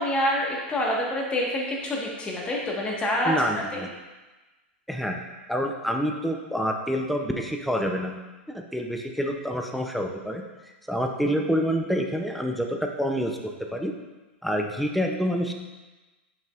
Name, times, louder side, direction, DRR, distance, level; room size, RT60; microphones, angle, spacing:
voice 1, 0.0-3.3 3.7-3.9, left 1 dB, 15° left, -2 dB, 1.4 m, -27 dB
voice 2, 3.2-3.9 4.9-5.2 5.5-8.2 8.5-10.4 10.9-13.9 14.4-15.5, equal, ahead, 2 dB, 0.6 m, -27 dB
7.2 x 5.6 x 2.5 m, 1.2 s
hypercardioid pair, 130°, 6 cm